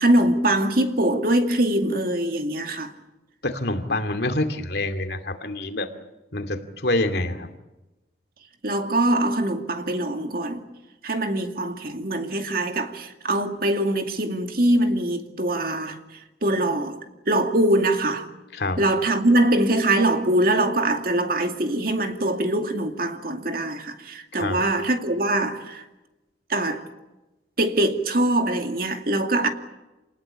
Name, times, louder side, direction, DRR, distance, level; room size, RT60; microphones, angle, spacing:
voice 1, 0.0-2.9 8.6-10.6 11.0-16.0 16.4-17.0 17.3-18.3 18.8-25.8 26.5-26.8 27.6-29.5, right 1 dB, 55° right, 2.4 m, -23 dB
voice 2, 3.4-5.9 6.3-7.5 18.5-18.8 24.3-24.6, left 2 dB, 65° left, 2.5 m, -26 dB
28.0 x 19.5 x 8.8 m
head